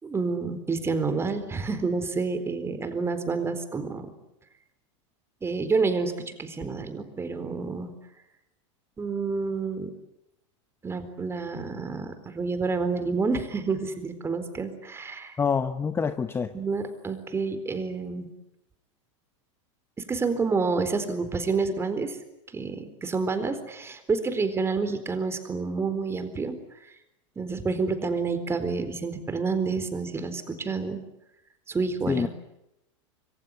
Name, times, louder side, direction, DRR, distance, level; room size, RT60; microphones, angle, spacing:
voice 1, 0.0-4.1 5.4-7.9 9.0-9.9 10.8-15.4 16.5-18.3 20.1-22.2 22.5-26.6 27.4-31.0 31.7-32.3, right 4 dB, 15° right, 10 dB, 4.2 m, -29 dB
voice 2, 15.4-16.6 32.1-32.3, left 6 dB, 15° left, 11 dB, 1.0 m, -26 dB
26.0 x 23.0 x 9.9 m, 0.87 s
supercardioid pair, 130°, 16 cm